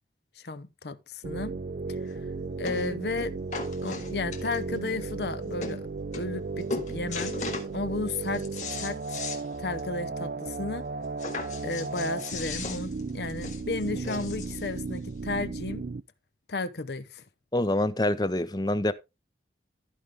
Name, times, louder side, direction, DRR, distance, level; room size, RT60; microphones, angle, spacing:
voice 1, 0.4-1.5 1.9-2.2 2.6-3.3 3.8-5.9 6.1-7.4 7.7-8.4 8.8-9.2 9.6-10.8 11.6-15.8 16.5-17.2, left 3 dB, 70° left, 0.8 m, -33 dB
sound 1, 1.2-16.0, right 4 dB, 55° right, 0.4 m, -35 dB
sound 2, 1.9-2.0 2.6-2.9 3.2-4.8 5.3-5.4 5.6-5.8 6.1-6.4 6.7-7.7 8.1-9.4 9.8-9.9 10.2-10.3 11.2-14.7 15.5-15.6, left 4 dB, 45° left, 2.9 m, -37 dB
voice 2, 17.5-18.9, left 1 dB, 20° left, 0.6 m, -26 dB
14.5 x 5.2 x 3.5 m
head